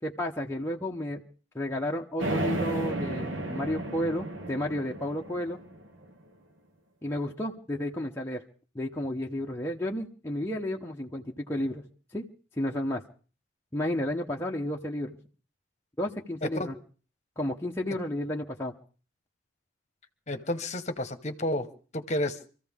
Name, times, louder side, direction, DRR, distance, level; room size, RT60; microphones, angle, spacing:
voice 1, 0.0-1.2 1.5-5.6 7.0-8.4 8.7-11.8 12.1-12.2 12.6-13.0 13.7-15.2 16.0-16.8 17.4-18.7, left 1 dB, 10° left, -1 dB, 0.8 m, -32 dB
sound 1, 2.2-6.1, right 1 dB, 70° right, 1.6 m, -33 dB
voice 2, 16.4-16.7 20.3-21.7 21.9-22.4, left 1 dB, 35° left, 9 dB, 1.1 m, -31 dB
25.5 x 14.5 x 3.6 m, 0.39 s
head